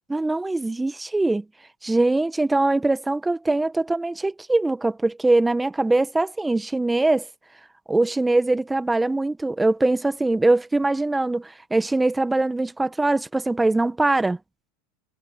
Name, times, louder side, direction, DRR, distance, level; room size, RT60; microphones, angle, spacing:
voice 1, 0.1-1.4 1.8-7.3 7.9-14.4, right 2 dB, 10° right, 1.4 m, -22 dB
hypercardioid pair, 90°, 0 cm